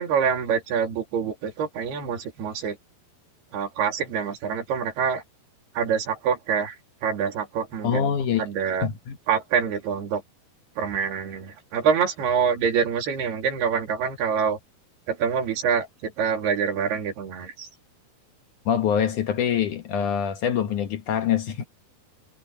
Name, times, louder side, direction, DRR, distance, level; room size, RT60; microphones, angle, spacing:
voice 1, 0.0-2.8 3.5-5.2 5.7-6.8 7.0-8.1 8.4-8.9 9.3-10.2 10.8-14.6 15.1-17.7, right 7 dB, 75° right, 5.0 m, -26 dB
voice 2, 7.8-8.4 8.8-9.2 18.7-21.6, left 8 dB, 60° left, 2.4 m, -24 dB
omnidirectional pair, 4.7 m